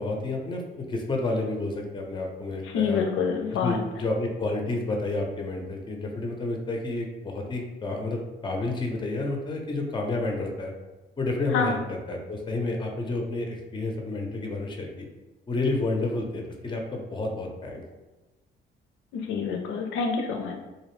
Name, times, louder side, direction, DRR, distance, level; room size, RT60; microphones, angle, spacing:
voice 1, 0.0-3.1 3.5-10.7 11.2-15.1 15.5-17.8, left 2 dB, 25° left, 2 dB, 0.5 m, -30 dB
voice 2, 2.7-3.8 11.5-11.7 19.3-20.6, left 5 dB, 80° left, 3 dB, 0.4 m, -26 dB
2.5 x 2.0 x 3.0 m, 1.1 s
cardioid pair, 90°, 20 cm